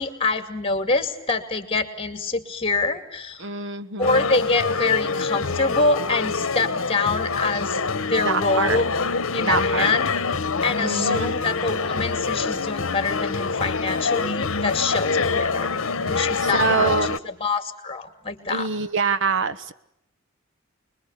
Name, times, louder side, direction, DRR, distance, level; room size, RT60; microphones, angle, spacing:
voice 1, 0.0-3.5 4.0-8.9 9.3-10.1 10.6-18.7, left 3 dB, 25° left, 8 dB, 2.5 m, -25 dB
voice 2, 3.4-4.3 8.2-8.8 9.4-9.9 10.8-11.4 16.4-17.1 18.5-19.7, right 4 dB, 60° right, 13 dB, 1.1 m, -25 dB
sound 1, 4.0-17.2, left 4 dB, 65° left, 1.1 m, -25 dB
26.0 x 21.5 x 8.2 m, 0.81 s
head